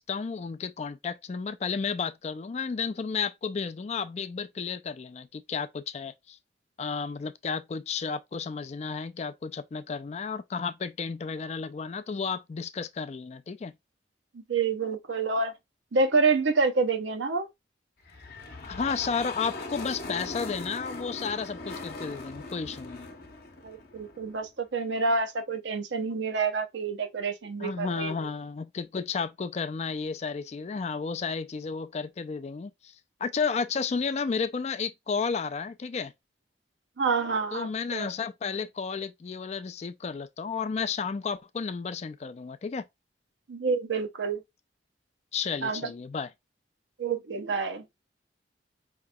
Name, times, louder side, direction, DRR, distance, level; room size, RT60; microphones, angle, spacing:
voice 1, 0.0-6.4 6.8-13.7 18.6-23.1 27.6-33.0 33.2-36.1 37.5-42.9 45.3-46.3, left 5 dB, 35° left, 0.3 m, -32 dB
voice 2, 14.3-15.5 15.9-17.5 23.6-28.1 37.0-38.1 43.5-44.4 45.6-45.9 47.0-47.8, right 4 dB, 75° right, 0.6 m, -28 dB
sound 1, 18.0-24.5, left 2 dB, 50° left, 0.8 m, -40 dB
5.0 x 2.9 x 2.2 m
head